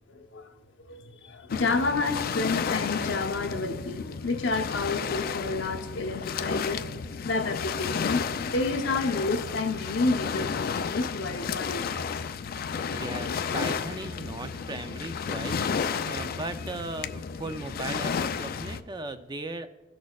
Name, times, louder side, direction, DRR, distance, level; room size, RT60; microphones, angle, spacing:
voice 1, 0.1-0.5 0.9-6.9 7.2-11.8, left 3 dB, 75° left, 5 dB, 0.9 m, -30 dB
Waves surf, 1.5-18.8, left 6 dB, 50° left, 0.4 m, -32 dB
voice 2, 12.9-19.7, right 2 dB, 25° right, 9 dB, 0.4 m, -37 dB
17.5 x 6.3 x 2.4 m, 1.2 s
head